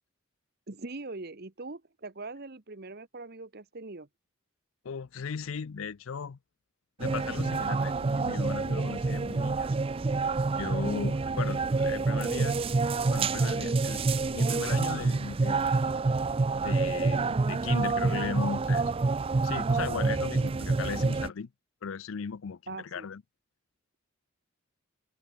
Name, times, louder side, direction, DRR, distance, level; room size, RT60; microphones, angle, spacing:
voice 1, 0.7-4.1 10.8-11.1 22.7-23.1, right 3 dB, 50° right, 1.1 m, -41 dB
voice 2, 4.8-6.4 7.0-9.7 10.6-12.6 13.1-15.6 16.6-18.8 19.4-21.5 21.8-23.2, left 6 dB, 70° left, 0.5 m, -37 dB
sound 1, 7.0-21.3, right 3 dB, 25° right, 0.4 m, -27 dB
head